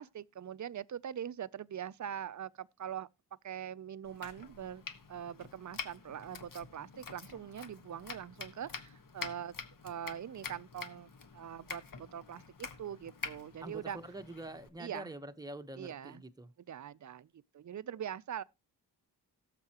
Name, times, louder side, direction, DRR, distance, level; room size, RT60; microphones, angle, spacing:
voice 1, 0.0-3.1 3.4-9.6 9.8-14.0 14.8-15.1 15.8-16.2 16.7-18.4, right 9 dB, 45° right, 0.5 m, -43 dB
Domestic sounds home sounds, 4.0-14.7, left 5 dB, 55° left, 1.4 m, -47 dB
voice 2, 13.6-16.5, right 1 dB, 10° right, 1.0 m, -45 dB
17.5 x 7.6 x 2.9 m
wide cardioid pair, 105°, 41 cm